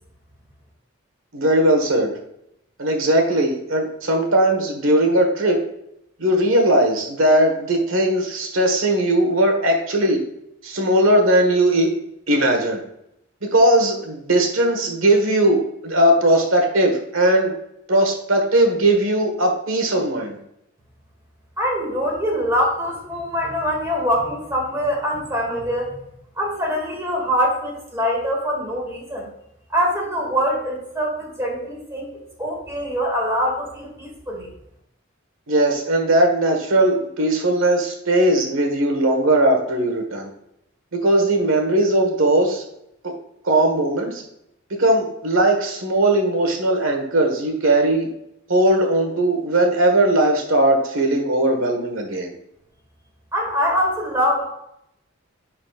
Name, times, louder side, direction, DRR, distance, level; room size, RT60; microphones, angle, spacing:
voice 1, 1.3-2.1 2.8-5.6 6.2-10.2 10.6-11.9 12.3-12.8 13.5-17.5 17.9-20.4 35.5-40.3 40.9-42.6 43.4-44.2 44.8-48.1 48.5-52.3, right 1 dB, 75° right, 3 dB, 1.5 m, -18 dB
voice 2, 21.6-26.0 26.4-29.3 29.7-34.5 53.3-54.4, equal, 15° right, -2 dB, 2.1 m, -23 dB
10.0 x 4.3 x 2.4 m, 0.78 s
head